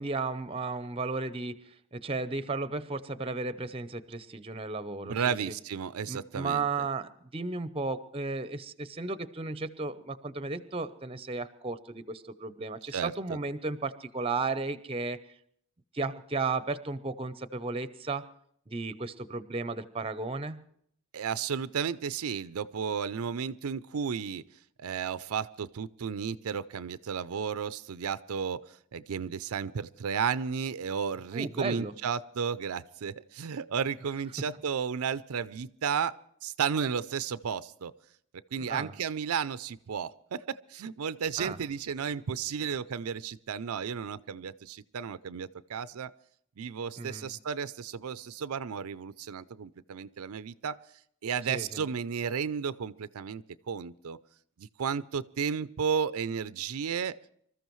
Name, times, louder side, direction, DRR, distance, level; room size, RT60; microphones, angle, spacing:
voice 1, 0.0-1.5 1.9-5.4 6.1-15.2 15.9-18.2 18.7-20.7 31.3-31.9 34.4-34.5 38.7-38.9 41.4-41.6 47.0-47.3 51.5-51.9, right 3 dB, 25° right, 13 dB, 0.6 m, -34 dB
voice 2, 5.0-6.9 12.9-13.4 21.1-24.4 24.8-36.2 36.4-37.9 38.5-46.1 46.6-50.8 51.2-54.2 54.6-57.2, right 6 dB, 80° right, 15 dB, 0.5 m, -33 dB
25.5 x 14.0 x 3.1 m, 0.66 s
head